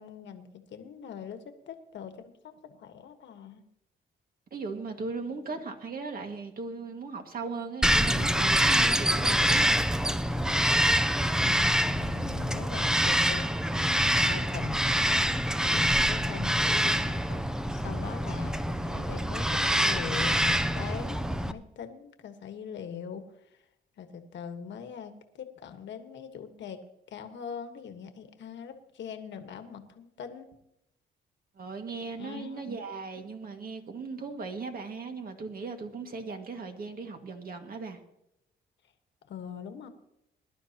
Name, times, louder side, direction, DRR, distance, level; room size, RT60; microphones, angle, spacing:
voice 1, 0.0-3.6 11.4-13.5 13.7-14.7 15.6-17.4 17.7-23.6 24.0-26.8 27.1-30.5 32.2-32.8 39.3-39.9, left 7 dB, 65° left, 7 dB, 1.4 m, -42 dB
voice 2, 4.5-9.8 31.6-38.0, right 4 dB, 45° right, 4 dB, 2.0 m, -38 dB
Bird vocalization bird call bird song, 7.8-21.5, equal, 5° right, 0.6 m, -25 dB
20.5 x 11.0 x 2.9 m, 0.82 s
cardioid pair, 90°, 20 cm